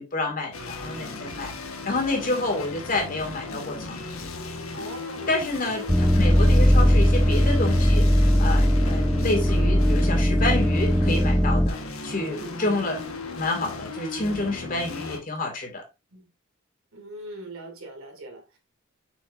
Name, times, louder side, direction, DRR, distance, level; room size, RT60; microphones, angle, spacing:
voice 1, 0.0-4.3 5.3-13.0 13.4-15.8, left 2 dB, 40° left, 2.2 m, -29 dB
sound 1, 0.5-15.2, left 3 dB, 85° left, 1.4 m, -36 dB
voice 2, 4.7-5.4 5.8-6.1 12.2-12.6 16.1-16.3 16.9-18.6, right 1 dB, 90° right, 2.8 m, -41 dB
sound 2, 5.9-11.7, equal, 5° left, 0.4 m, -19 dB
6.4 x 6.2 x 2.6 m
head